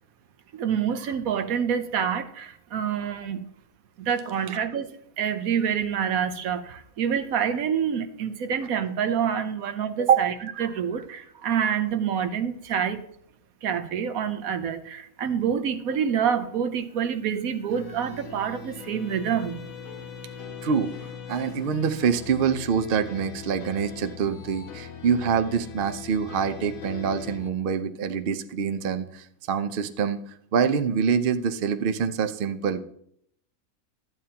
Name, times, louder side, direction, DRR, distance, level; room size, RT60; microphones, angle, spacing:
voice 1, 0.5-3.5 4.0-4.9 5.2-13.0 13.6-19.6, right 8 dB, 80° right, 9 dB, 1.2 m, -26 dB
sound 1, 17.7-27.5, left 7 dB, 75° left, 1.3 m, -40 dB
voice 2, 20.6-20.9 21.3-30.2 30.5-32.8, right 6 dB, 55° right, 10 dB, 0.6 m, -26 dB
12.5 x 9.0 x 2.8 m, 0.69 s
omnidirectional pair, 1.5 m